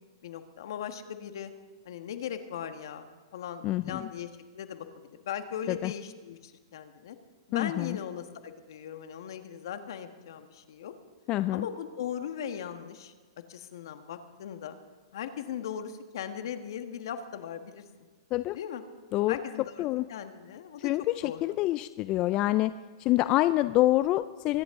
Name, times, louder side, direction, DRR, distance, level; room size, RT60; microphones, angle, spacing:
voice 1, 0.2-1.5 1.8-4.9 5.2-7.2 7.5-10.9 11.5-13.1 13.5-14.8 15.1-17.8 18.5-18.8 19.3-20.9 21.2-21.4 23.2-23.3, left 8 dB, 65° left, 8 dB, 1.4 m, -38 dB
voice 2, 3.6-4.0 5.7-5.9 7.5-8.0 11.3-11.7 18.3-18.6 19.1-19.4 19.8-20.0 20.8-22.7 23.0-24.6, left 16 dB, 35° left, 14 dB, 0.4 m, -26 dB
24.5 x 10.5 x 3.7 m, 1.5 s
hypercardioid pair, 130°, 2 cm